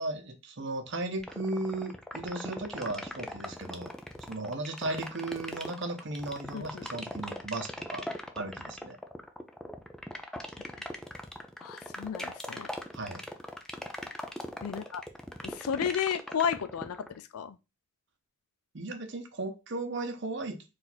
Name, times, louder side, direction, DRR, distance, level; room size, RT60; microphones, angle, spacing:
voice 1, 0.0-3.9 4.3-8.1 8.3-9.0 12.9-13.2 18.7-20.6, right 2 dB, 55° right, 0.7 m, -36 dB
sound 1, 1.2-17.2, equal, 5° left, 0.4 m, -39 dB
voice 2, 6.5-6.9 10.8-10.9 11.6-12.7 14.6-15.0 15.4-17.6, left 7 dB, 90° left, 0.4 m, -33 dB
4.4 x 2.6 x 4.0 m
head